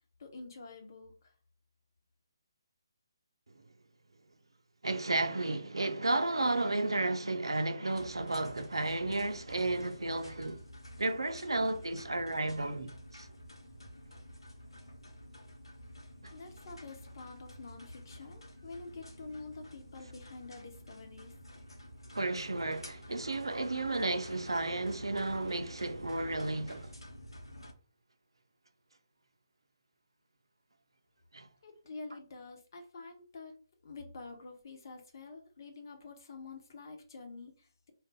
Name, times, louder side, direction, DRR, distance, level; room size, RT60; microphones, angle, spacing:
voice 1, 0.2-1.3 16.3-21.3 31.6-33.6 33.8-37.9, left 3 dB, 50° left, 0.9 m, -48 dB
voice 2, 4.8-10.6 11.0-13.3 16.2-16.3 22.1-26.9 31.3-31.5, right 2 dB, 85° right, 0.4 m, -33 dB
sound 1, 7.9-27.7, equal, 90° left, 0.8 m, -51 dB
2.5 x 2.2 x 3.6 m
figure-of-eight pair, 140°, 2 cm